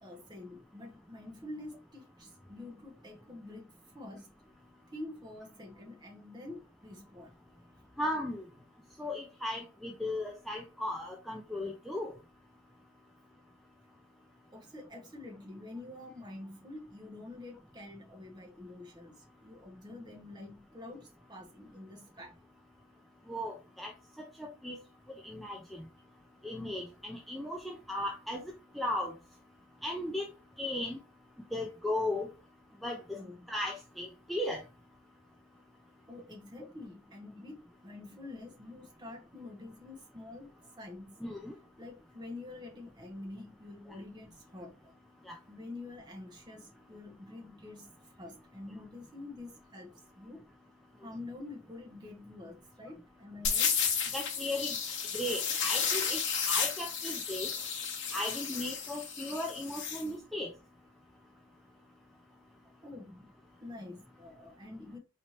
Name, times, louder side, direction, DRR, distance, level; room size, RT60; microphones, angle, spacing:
voice 1, 0.0-4.3 4.9-7.3 14.5-22.4 33.1-33.5 36.1-41.2 41.8-44.9 45.5-50.4 51.0-53.7 62.8-63.3 63.6-65.0, left 2 dB, 20° right, 0.8 m, -47 dB
voice 2, 8.0-8.5 9.0-12.1 23.3-23.9 24.4-24.8 25.2-25.6 26.4-28.4 28.8-29.1 29.8-30.3 30.6-31.0 31.5-32.3 32.8-33.2 33.5-34.6 41.2-41.5 45.3-45.4 54.1-54.7 55.1-56.2 56.5-57.5 58.1-60.5, left 1 dB, ahead, 0.3 m, -36 dB
sound 1, 53.4-60.0, left 6 dB, 55° left, 0.9 m, -32 dB
4.2 x 2.8 x 2.9 m
head